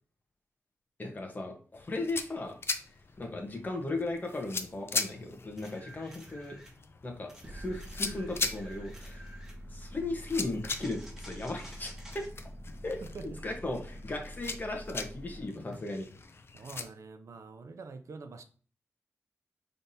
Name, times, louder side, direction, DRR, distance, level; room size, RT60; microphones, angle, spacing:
voice 1, 1.0-2.5 3.2-6.6 7.0-9.2 9.7-12.2 12.8-13.0 13.4-16.1, left 2 dB, 35° left, 2 dB, 1.1 m, -36 dB
sound 1, 1.7-16.8, left 4 dB, 50° left, 0.5 m, -40 dB
sound 2, 5.6-6.8 7.3-9.6 10.7-12.3 15.7-15.8, right 1 dB, 10° right, 1.4 m, -52 dB
sound 3, 7.4-15.4, equal, 25° right, 1.0 m, -46 dB
voice 2, 13.0-13.4 16.5-18.4, right 4 dB, 70° right, 8 dB, 0.5 m, -45 dB
5.7 x 3.4 x 2.7 m, 0.42 s
wide cardioid pair, 110°, 5 cm